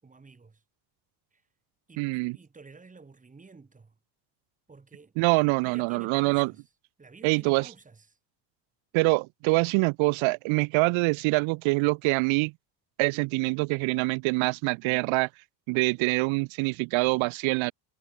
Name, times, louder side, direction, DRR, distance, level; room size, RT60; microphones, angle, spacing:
voice 1, 0.0-0.6 1.3-1.4 1.9-4.0 4.7-6.6 7.0-8.2, right 4 dB, 15° right, 7.5 m, -51 dB
voice 2, 2.0-2.4 5.2-6.5 7.2-7.7 8.9-12.5 13.0-15.3 15.7-17.7, right 26 dB, 75° right, 1.3 m, -25 dB
cardioid pair, 145°, 48 cm